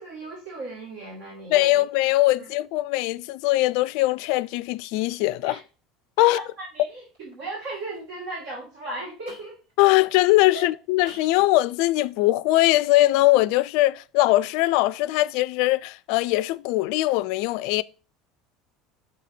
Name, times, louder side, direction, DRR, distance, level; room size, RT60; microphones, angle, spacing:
voice 1, 0.0-1.8 2.4-2.5 5.4-5.6 6.2-9.6 10.5-10.7, right 2 dB, 70° right, 2.7 m, -36 dB
voice 2, 1.5-5.6 6.2-6.4 9.8-17.8, left 18 dB, 65° left, 0.3 m, -21 dB
sound 1, 7.1-7.3 7.6-8.0 9.3-9.7 11.0-11.5, equal, 85° right, 3.5 m, -47 dB
6.6 x 4.1 x 4.1 m
hypercardioid pair, 75°, 0 cm